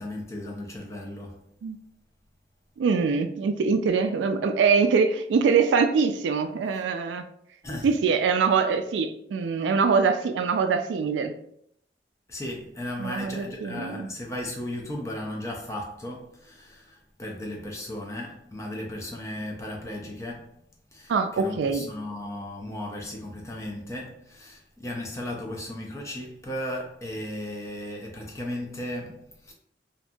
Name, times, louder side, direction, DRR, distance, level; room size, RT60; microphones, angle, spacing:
voice 1, 0.0-1.4 7.6-7.9 12.3-20.5 20.9-29.5, left 1 dB, 15° left, 0.4 m, -36 dB
voice 2, 2.8-7.2 7.8-11.3 13.0-14.1 21.1-21.9, right 5 dB, 85° right, 0.3 m, -23 dB
2.7 x 2.5 x 2.2 m
head